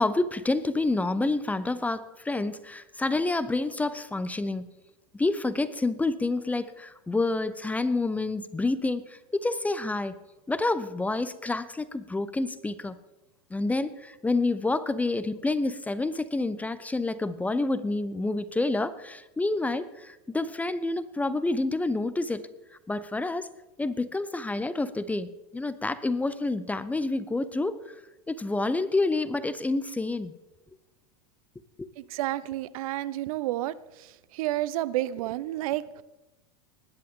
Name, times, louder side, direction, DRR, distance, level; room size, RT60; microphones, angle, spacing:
voice 1, 0.0-4.7 5.1-10.2 10.5-13.0 13.5-22.5 22.9-23.5 23.8-28.0 28.3-30.3 31.8-31.9, left 2 dB, 10° left, 14 dB, 0.5 m, -28 dB
voice 2, 32.0-36.0, right 15 dB, 70° right, 19 dB, 0.6 m, -31 dB
20.5 x 10.5 x 3.7 m, 1.0 s
hypercardioid pair, 120°, 19 cm